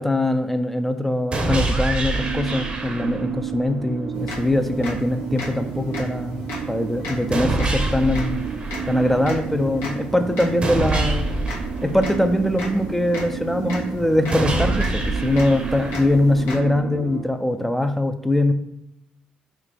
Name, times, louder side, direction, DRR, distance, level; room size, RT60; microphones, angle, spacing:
voice 1, 0.0-8.4 8.9-11.3 11.8-18.5, left 1 dB, 5° left, 8 dB, 0.3 m, -22 dB
sound 1, 1.3-3.3 7.3-9.3 10.6-12.6 14.3-16.3, right 2 dB, 35° right, 0.7 m, -26 dB
sound 2, 2.1-17.2, right 7 dB, 70° right, 0.4 m, -32 dB
sound 3, 4.1-16.6, left 1 dB, 85° left, 0.8 m, -36 dB
3.3 x 2.3 x 3.8 m, 0.82 s
supercardioid pair, 65°, 3 cm